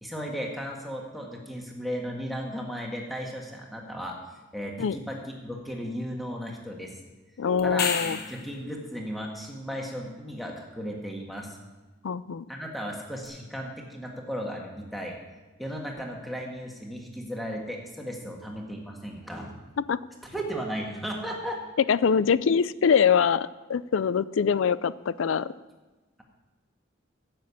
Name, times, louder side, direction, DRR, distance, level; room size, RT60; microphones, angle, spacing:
voice 1, 0.0-4.2 4.5-6.9 7.6-11.6 12.5-15.1 15.6-19.5 20.2-21.6, equal, ahead, -1 dB, 1.6 m, -35 dB
voice 2, 7.4-8.2 12.0-12.4 19.9-20.0 21.9-25.5, left 6 dB, 80° left, 17 dB, 0.4 m, -24 dB
sound 1, 7.6-8.6 13.2-13.3, left 6 dB, 50° left, 1.0 m, -30 dB
10.5 x 7.5 x 8.4 m, 1.2 s
head